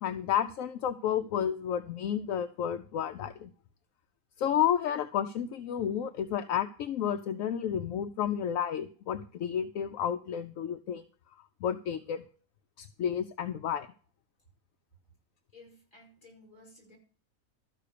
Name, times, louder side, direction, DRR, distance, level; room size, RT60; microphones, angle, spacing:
voice 1, 0.0-3.5 4.4-11.0 11.6-12.2 12.8-13.9, left 9 dB, 75° left, 8 dB, 1.0 m, -31 dB
voice 2, 15.5-17.0, left 2 dB, 25° left, -1 dB, 5.2 m, -55 dB
13.0 x 5.6 x 6.6 m, 0.42 s
omnidirectional pair, 1.5 m